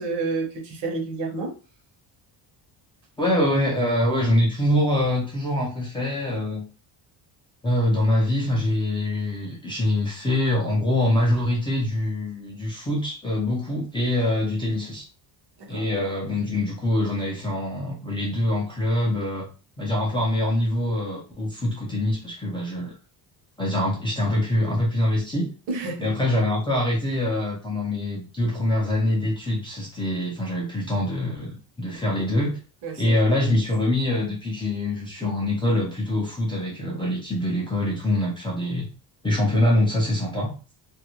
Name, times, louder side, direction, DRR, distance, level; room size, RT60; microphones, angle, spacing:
voice 1, 0.0-1.6 15.6-15.9 25.7-26.1 32.8-33.2, right 3 dB, 65° right, 2 dB, 0.9 m, -29 dB
voice 2, 3.2-6.6 7.6-15.0 15.7-19.5 19.8-22.9 23.6-25.5 26.0-32.6 33.0-38.9 39.2-40.5, left 1 dB, 10° left, -5 dB, 0.4 m, -24 dB
2.4 x 2.0 x 2.9 m, 0.34 s
cardioid pair, 175°, 44 cm